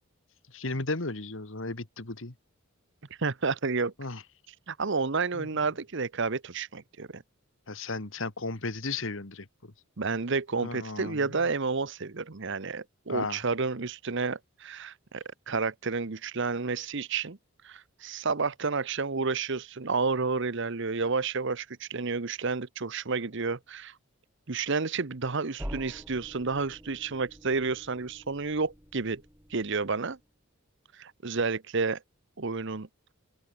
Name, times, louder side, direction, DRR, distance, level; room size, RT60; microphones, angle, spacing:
voice 1, 0.5-2.3 4.0-4.2 5.4-5.5 7.7-9.5 10.6-11.3 13.1-13.4, left 3 dB, 65° left, 1.9 m, -34 dB
voice 2, 3.2-3.9 4.5-7.2 10.0-17.4 17.6-23.9 24.5-29.2 29.5-30.2 30.9-32.0 32.4-32.9, right 4 dB, 60° right, 1.0 m, -30 dB
sound 1, 25.6-30.3, equal, 10° right, 4.1 m, -46 dB
head